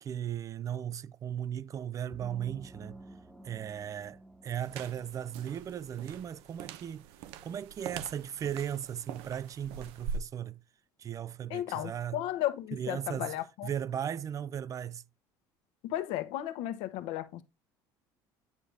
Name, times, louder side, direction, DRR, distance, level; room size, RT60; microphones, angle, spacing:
voice 1, 0.0-3.0 3.4-7.1 7.4-10.6 11.0-12.2 12.7-13.3 13.6-15.0, right 9 dB, 40° right, 0.4 m, -37 dB
sound 1, 2.1-5.7, right 1 dB, 5° right, 1.1 m, -51 dB
sound 2, 4.5-10.2, right 6 dB, 80° right, 0.7 m, -43 dB
voice 2, 11.5-13.7 15.8-17.4, left 13 dB, 75° left, 1.1 m, -34 dB
9.6 x 5.1 x 3.4 m
supercardioid pair, 105°, 9 cm